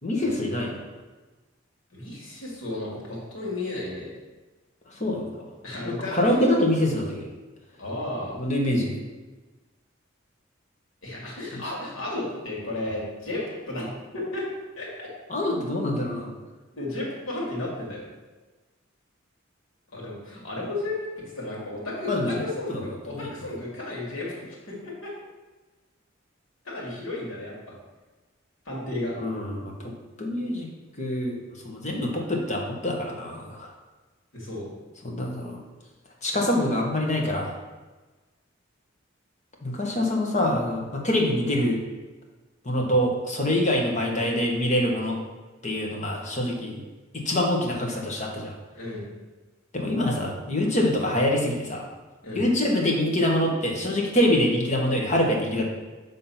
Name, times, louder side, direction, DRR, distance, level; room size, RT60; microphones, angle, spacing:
voice 1, 0.0-0.8 5.0-5.4 5.8-7.3 8.4-8.9 15.3-16.3 22.1-22.4 22.7-22.8 23.1-23.3 29.2-29.9 30.2-30.7 31.0-31.4 31.6-33.7 35.0-35.6 36.2-37.6 39.6-41.8 42.6-45.2 45.6-46.8 47.1-48.5 49.7-51.8 52.3-55.7, left 1 dB, 35° left, 0 dB, 1.3 m, -25 dB
voice 2, 1.9-4.1 5.6-6.3 7.8-8.3 11.0-14.5 14.7-15.1 16.7-18.0 19.9-25.1 26.6-27.7 28.7-29.1 34.3-34.7 48.7-49.0 52.2-52.5, left 2 dB, 85° left, -4 dB, 2.4 m, -33 dB
7.3 x 3.8 x 5.7 m, 1.3 s
head